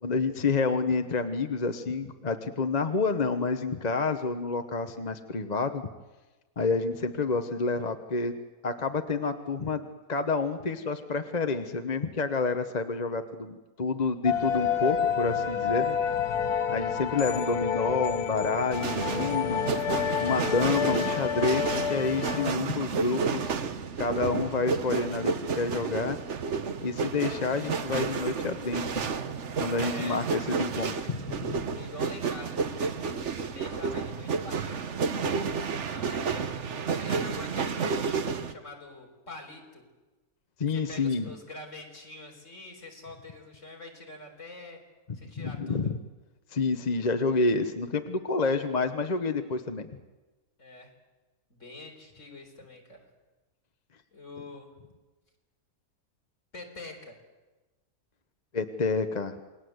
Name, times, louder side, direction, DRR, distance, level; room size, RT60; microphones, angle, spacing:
voice 1, 0.0-5.9 6.6-8.3 8.6-16.0 16.7-19.7 20.2-23.5 24.0-26.2 26.8-29.1 29.6-31.7 35.2-35.3 40.6-41.3 45.4-46.0 46.5-49.9 58.5-59.4, left 4 dB, 30° left, 7 dB, 1.0 m, -29 dB
sound 1, 14.3-22.5, left 8 dB, 90° left, 1.7 m, -29 dB
sound 2, 18.7-38.5, right 5 dB, 50° right, 1.3 m, -31 dB
voice 2, 29.7-30.2 31.7-35.0 35.8-39.9 40.7-44.8 45.1-45.9 50.6-50.9 51.5-53.1 54.1-54.7 56.5-57.2, left 2 dB, 50° left, 2 dB, 4.6 m, -45 dB
28.0 x 20.0 x 8.0 m, 1.2 s
omnidirectional pair, 1.6 m